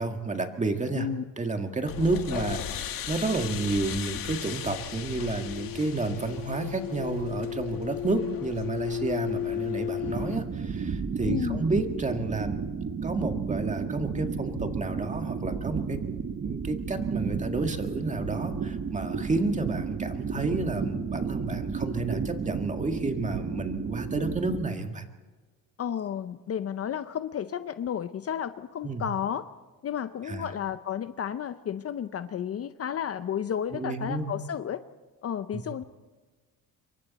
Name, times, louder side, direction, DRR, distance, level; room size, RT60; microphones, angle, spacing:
voice 1, 0.0-1.1 1.4-12.6 13.0-16.0 16.4-25.1 28.8-29.0 30.2-30.5 33.7-34.3 35.5-35.6, right 3 dB, 20° right, 5 dB, 1.8 m, -31 dB
sound 1, 1.9-10.4, left 10 dB, 70° left, 2.2 m, -34 dB
sound 2, 10.0-24.7, right 5 dB, 35° right, 1.4 m, -32 dB
voice 2, 11.2-11.6 25.8-29.5 29.8-34.8 35.2-35.8, left 9 dB, 40° left, 12 dB, 0.7 m, -32 dB
27.0 x 23.5 x 4.2 m, 1.3 s
cardioid pair, 125°, 35 cm